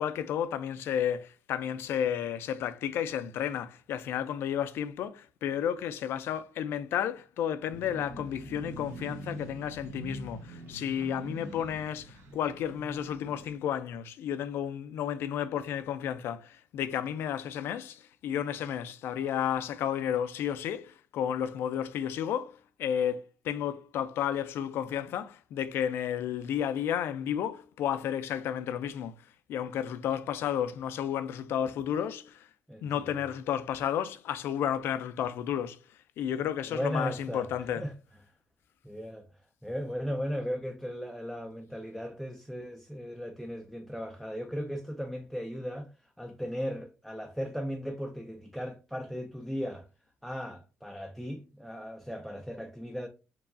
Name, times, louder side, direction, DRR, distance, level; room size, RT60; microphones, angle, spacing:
voice 1, 0.0-22.5 22.8-23.2 23.4-29.1 29.5-32.3 32.8-35.8 36.2-37.8, left 9 dB, 70° left, 0.5 m, -32 dB
sound 1, 7.7-13.5, right 1 dB, 75° right, 1.2 m, -44 dB
voice 2, 11.2-11.8 32.7-33.2 36.3-37.9 38.8-39.3 39.6-49.9 50.2-53.1, equal, ahead, 0.4 m, -37 dB
4.6 x 3.1 x 2.6 m
cardioid pair, 140°, 4 cm